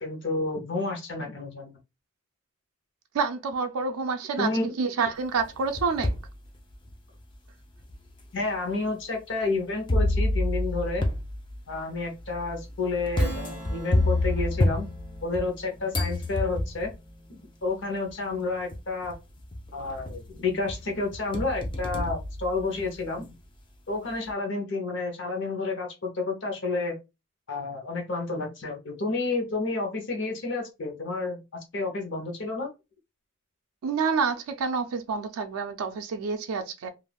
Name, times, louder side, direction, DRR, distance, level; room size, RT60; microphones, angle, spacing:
voice 1, 0.0-1.7 4.4-4.7 8.3-11.1 11.7-14.9 15.2-16.9 17.3-19.2 19.7-23.3 23.9-27.0 27.5-32.7, left 3 dB, 55° left, 0.8 m, -30 dB
voice 2, 3.1-4.5 4.8-6.1 33.8-36.9, right 5 dB, 85° right, 0.4 m, -28 dB
sound 1, 5.4-6.3 6.9-7.0 7.9-8.0 9.9-15.6 15.9-16.9 18.1-18.2 18.7-19.1 19.5-20.3 20.7-23.1, left 1 dB, 20° left, 0.4 m, -28 dB
Strum, 13.2-18.1, right 2 dB, 5° right, 0.7 m, -44 dB
3.3 x 2.4 x 2.2 m
head